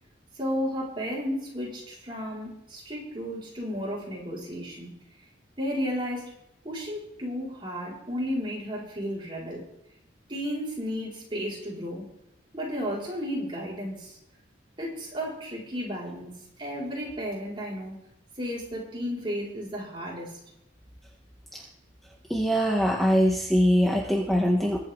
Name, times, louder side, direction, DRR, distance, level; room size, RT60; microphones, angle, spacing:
voice 1, 0.4-4.9 5.6-6.3 6.6-9.6 10.3-12.1 12.5-14.2 14.8-16.3 16.6-18.0 18.4-20.3, equal, 25° right, -5 dB, 4.9 m, -33 dB
voice 2, 22.3-24.8, equal, ahead, -1 dB, 1.3 m, -22 dB
22.5 x 8.3 x 3.7 m, 0.76 s
head